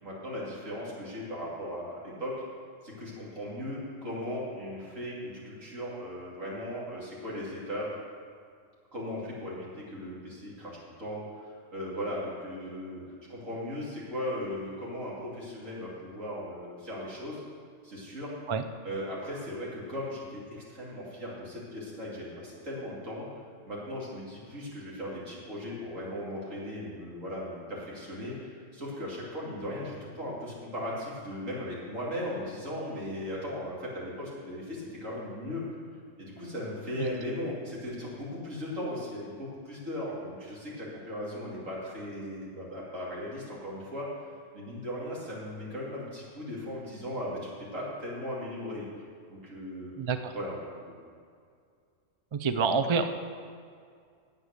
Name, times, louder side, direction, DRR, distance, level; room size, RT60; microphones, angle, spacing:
voice 1, 0.0-2.3 2.8-7.9 8.9-13.0 13.3-17.4 17.8-18.3 18.8-23.3 23.6-35.7 36.2-44.1 44.5-48.9 49.3-49.9 50.3-50.9, left 1 dB, 80° right, -6 dB, 3.2 m, -37 dB
voice 2, 50.0-50.3 52.3-53.1, right 5 dB, 45° right, 9 dB, 0.4 m, -27 dB
9.8 x 8.6 x 6.6 m, 2.2 s
omnidirectional pair, 1.3 m